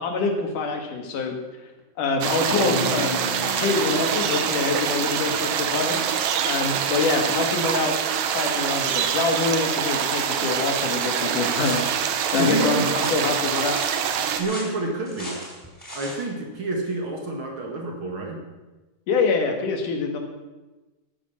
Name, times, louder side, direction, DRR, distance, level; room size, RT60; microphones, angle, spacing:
voice 1, 0.0-1.4 2.0-6.0 6.4-8.0 8.3-11.8 12.3-13.8 19.1-20.2, left 4 dB, 80° left, 4 dB, 3.3 m, -25 dB
sound 1, 2.2-14.4, right 8 dB, 70° right, 2.2 m, -25 dB
sound 2, 2.5-6.6, left 2 dB, 50° left, 2.5 m, -34 dB
sound 3, 11.5-16.2, equal, 5° left, 4.4 m, -38 dB
voice 2, 12.4-12.9 14.4-15.4 15.9-18.4, right 2 dB, 45° right, 1 dB, 2.3 m, -28 dB
12.5 x 9.6 x 7.1 m, 1.1 s
omnidirectional pair, 3.6 m